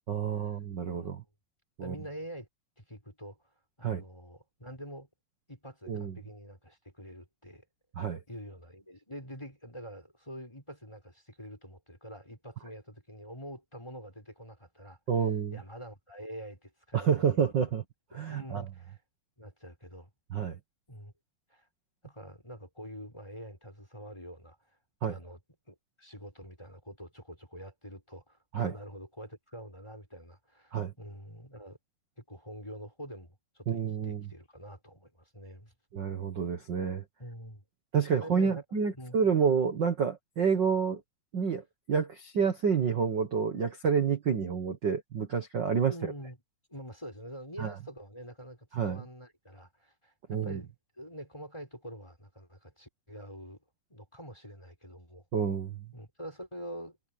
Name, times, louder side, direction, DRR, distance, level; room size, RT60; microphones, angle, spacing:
voice 1, 0.1-1.2 1.8-1.9 3.8-4.0 5.9-6.2 8.0-8.2 15.1-15.6 16.9-17.8 18.1-18.6 20.3-20.6 25.0-25.2 28.5-28.7 30.7-30.9 33.7-34.3 35.9-37.0 37.9-41.0 41.3-45.9 47.6-47.7 48.7-49.0 50.3-50.6 55.3-55.9, right 6 dB, 65° right, 1.1 m, -29 dB
voice 2, 0.8-1.2 1.8-2.5 2.8-3.4 3.8-5.1 5.5-7.6 8.3-15.0 15.5-17.7 18.1-19.0 19.4-20.1 20.9-21.1 21.5-21.7 22.0-24.6 25.0-25.4 25.7-31.8 32.2-35.7 37.2-37.7 38.1-38.6 39.0-39.2 45.9-46.4 46.7-53.6 53.9-55.2 55.9-57.0, equal, 5° left, 5.6 m, -46 dB
omnidirectional pair, 4.2 m